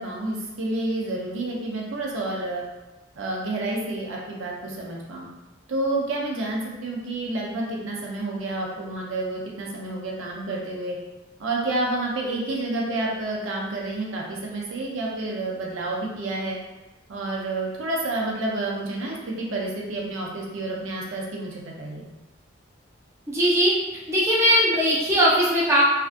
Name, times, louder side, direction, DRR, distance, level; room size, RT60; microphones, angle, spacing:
voice 1, 0.0-2.6 3.2-5.3 5.7-11.0 11.4-16.6 17.1-22.0, right 2 dB, 85° right, -2 dB, 0.6 m, -29 dB
voice 2, 23.3-23.7 24.1-25.8, equal, 15° right, -6 dB, 0.4 m, -19 dB
2.6 x 2.3 x 2.4 m, 1.1 s
head